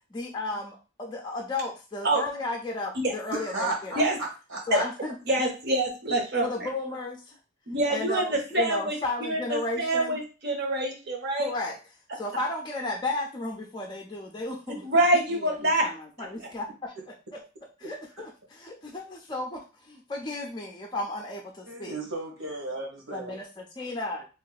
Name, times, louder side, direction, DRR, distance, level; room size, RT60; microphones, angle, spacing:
voice 1, 0.1-4.1 4.7-5.1 6.4-7.2 7.9-10.2 11.4-11.8 12.1-14.8 15.8-17.4 17.8-22.0 23.1-24.3, left 2 dB, 20° left, 0.5 m, -34 dB
voice 2, 3.3-4.0 4.5-4.8 17.8-17.9 21.7-23.3, right 2 dB, 75° right, 1.4 m, -34 dB
voice 3, 5.3-6.5 7.7-11.5 14.7-15.9 16.2-16.3, right 1 dB, 50° right, 0.9 m, -26 dB
3.0 x 2.6 x 3.9 m
head